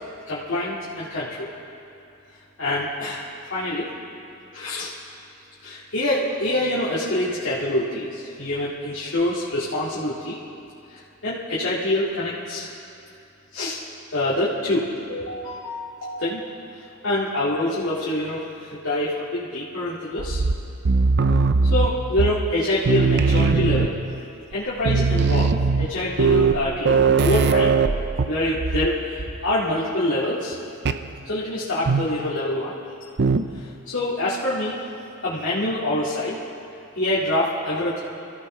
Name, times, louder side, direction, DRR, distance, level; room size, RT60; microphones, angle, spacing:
voice 1, 0.3-1.5 2.6-3.2 3.5-3.9 4.5-4.9 5.6-10.4 10.9-12.7 13.5-13.8 14.1-16.4 17.0-20.4 21.6-24.0 24.5-27.7 28.2-30.6 31.2-32.7 33.6-34.8 35.2-36.4 36.9-38.0, left 1 dB, 65° left, -9 dB, 2.2 m, -26 dB
sound 1, 20.2-22.6 22.9-24.2 24.5-24.6 24.8-28.9 29.2-29.5 30.9-31.1 31.9-32.3 33.2-33.6, right 4 dB, 55° right, 0.6 m, -20 dB
26.5 x 15.5 x 3.3 m, 2.7 s
head